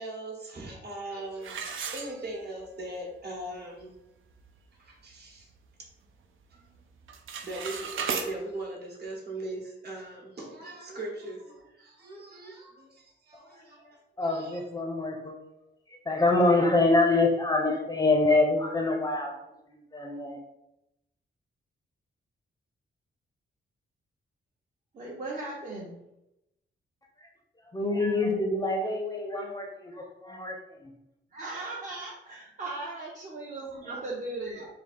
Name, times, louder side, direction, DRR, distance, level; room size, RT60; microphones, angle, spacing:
voice 1, 0.0-3.9 4.8-5.5 6.5-6.7 7.4-14.6 33.8-34.0 34.6-34.7, right 2 dB, 55° right, -2 dB, 1.2 m, -40 dB
sound 1, 1.4-2.7 3.1-3.2 3.8-3.9 4.3-4.6 5.0-6.1 6.4-6.8 7.0-8.3, right 6 dB, 80° right, 0.5 m, -36 dB
voice 2, 14.2-15.4 15.9-20.4 27.2-27.3 27.6-30.9, left 2 dB, 20° left, 1 dB, 0.5 m, -26 dB
voice 3, 24.9-26.0 31.3-34.7, right 2 dB, 35° right, -4 dB, 0.7 m, -37 dB
3.7 x 2.7 x 4.2 m, 0.88 s
wide cardioid pair, 155°, 20 cm